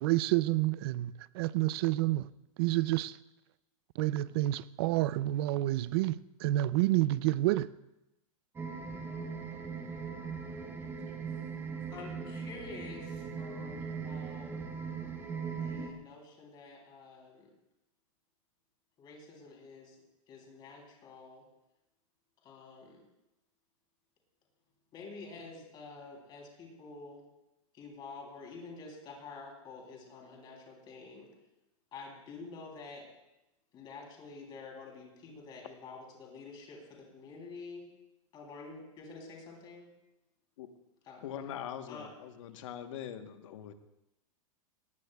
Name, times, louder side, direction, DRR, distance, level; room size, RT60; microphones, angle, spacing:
voice 1, 0.0-2.3 2.6-3.2 4.0-7.7, right 16 dB, 45° right, 0.4 m, -29 dB
sound 1, 8.6-15.9, right 5 dB, 10° right, 1.0 m, -39 dB
voice 2, 11.9-14.5 15.6-17.5 19.0-19.9 20.3-21.4 22.4-23.0 24.9-27.2 27.8-31.3 31.9-33.1 33.7-37.8 38.3-39.9 41.1-41.2 41.9-42.1, left 4 dB, 25° left, 3.2 m, -48 dB
voice 3, 41.2-43.7, left 9 dB, 60° left, 1.2 m, -42 dB
19.0 x 15.0 x 2.3 m
supercardioid pair, 150°, 18 cm